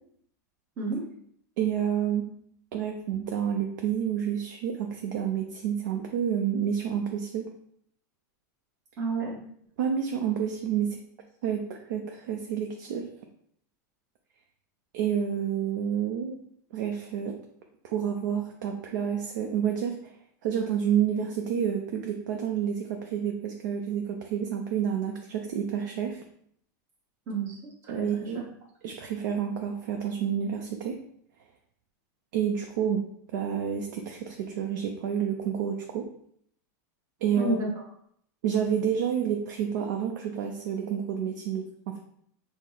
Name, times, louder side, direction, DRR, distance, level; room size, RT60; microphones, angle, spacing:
voice 1, 1.6-2.3 2.7-7.4 9.8-11.0 11.4-11.6 11.9-13.1 14.9-16.4 16.7-17.4 17.8-20.1 20.4-26.2 27.9-28.4 28.8-31.0 32.3-33.0 33.3-36.1 37.2-37.6 38.4-42.0, right 8 dB, 65° right, 3 dB, 0.5 m, -29 dB
voice 2, 9.0-9.4 27.3-28.4 37.4-37.7, right 3 dB, 25° right, -4 dB, 1.1 m, -31 dB
4.6 x 2.0 x 3.9 m, 0.67 s
supercardioid pair, 155°, 10 cm